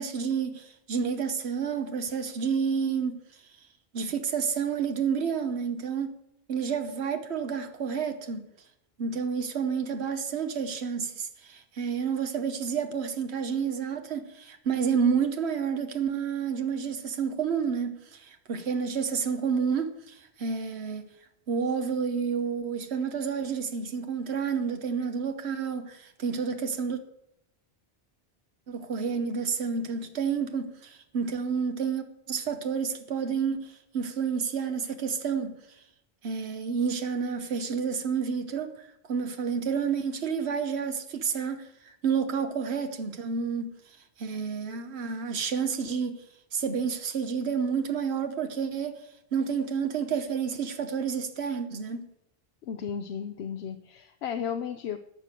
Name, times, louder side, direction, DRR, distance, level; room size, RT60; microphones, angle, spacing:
voice 1, 0.0-3.2 3.9-6.1 6.5-8.5 9.0-21.0 21.5-27.0 28.7-35.6 36.2-41.7 42.0-43.7 44.2-46.2 46.5-49.0 49.3-52.1, right 6 dB, 85° right, 1.2 m, -30 dB
voice 2, 52.6-55.0, left 8 dB, 80° left, 0.9 m, -34 dB
12.0 x 6.7 x 7.6 m
omnidirectional pair, 1.1 m